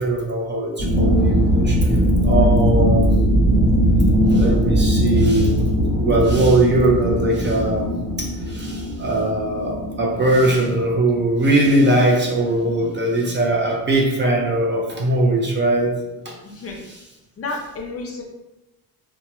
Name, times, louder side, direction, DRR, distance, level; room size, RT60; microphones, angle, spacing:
voice 1, 0.0-1.8 2.2-3.1 4.3-7.9 8.2-15.9 16.3-16.4, right 2 dB, 30° right, -1 dB, 0.4 m, -20 dB
sound 1, 0.8-13.6, equal, 50° right, 1.4 m, -20 dB
voice 2, 16.4-16.8 17.4-18.2, left 3 dB, 35° left, 1 dB, 0.5 m, -31 dB
2.8 x 2.2 x 2.8 m, 1.0 s
cardioid pair, 110°, 39 cm